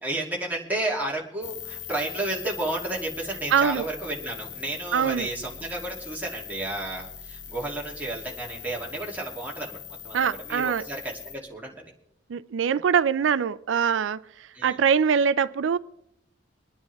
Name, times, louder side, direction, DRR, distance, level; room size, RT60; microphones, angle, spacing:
voice 1, 0.0-9.8 10.0-11.8 14.5-14.8, right 2 dB, 10° right, 2.8 m, -32 dB
sound 1, 1.4-11.4, left 8 dB, 70° left, 1.8 m, -41 dB
voice 2, 3.5-3.9 4.9-5.3 10.1-10.8 12.3-14.2 14.6-15.8, right 7 dB, 90° right, 0.4 m, -23 dB
24.5 x 9.8 x 3.5 m
head